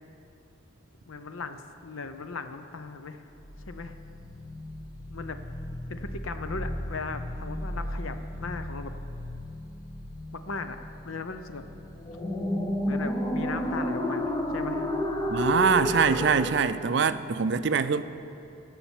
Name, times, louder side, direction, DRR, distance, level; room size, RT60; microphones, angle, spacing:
voice 1, 1.0-3.2 3.7-4.0 5.1-5.4 5.9-8.9 10.3-10.8 11.0-11.6 12.8-14.9, left 4 dB, 85° left, 9 dB, 0.7 m, -37 dB
sound 1, 3.4-16.7, left 1 dB, 20° left, 0.7 m, -33 dB
voice 2, 15.3-18.0, right 5 dB, 55° right, 12 dB, 0.4 m, -24 dB
16.0 x 5.8 x 7.3 m, 2.9 s
head